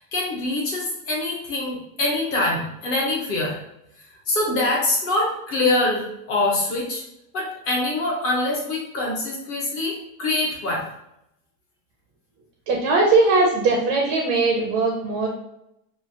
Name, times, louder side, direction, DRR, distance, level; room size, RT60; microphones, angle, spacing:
voice 1, 0.0-3.6 4.3-7.0 7.3-10.8, left 2 dB, 30° left, -2 dB, 0.7 m, -24 dB
voice 2, 12.7-15.3, right 3 dB, 35° right, -1 dB, 0.5 m, -20 dB
3.0 x 2.4 x 2.6 m, 0.81 s
supercardioid pair, 160°, 46 cm